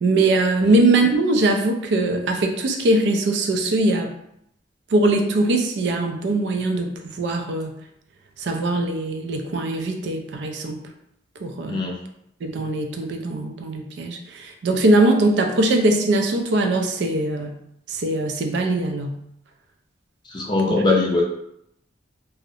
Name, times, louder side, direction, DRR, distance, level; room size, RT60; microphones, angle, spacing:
voice 1, 0.0-4.1 4.9-7.7 8.4-10.9 11.4-11.9 12.4-17.6 17.9-19.2 20.7-20.8, right 2 dB, 65° right, 4 dB, 0.3 m, -21 dB
voice 2, 20.3-21.2, left 3 dB, 25° left, -1 dB, 0.4 m, -21 dB
2.4 x 2.0 x 2.7 m, 0.75 s
head